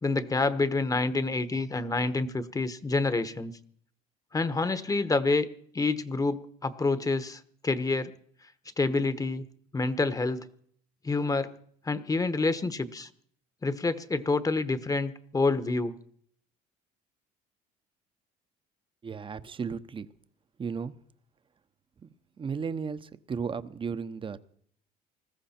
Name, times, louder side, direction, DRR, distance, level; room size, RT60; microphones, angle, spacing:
voice 1, 0.0-3.5 4.3-5.5 5.7-8.1 8.8-9.4 9.7-10.4 11.0-11.5 11.9-13.1 13.6-15.9, left 3 dB, 20° left, 13 dB, 1.1 m, -27 dB
voice 2, 19.0-20.1 20.6-20.9 22.0-22.1 22.4-24.4, right 6 dB, 30° right, 12 dB, 0.9 m, -34 dB
20.0 x 14.5 x 4.4 m, 0.62 s
supercardioid pair, 85°, 18 cm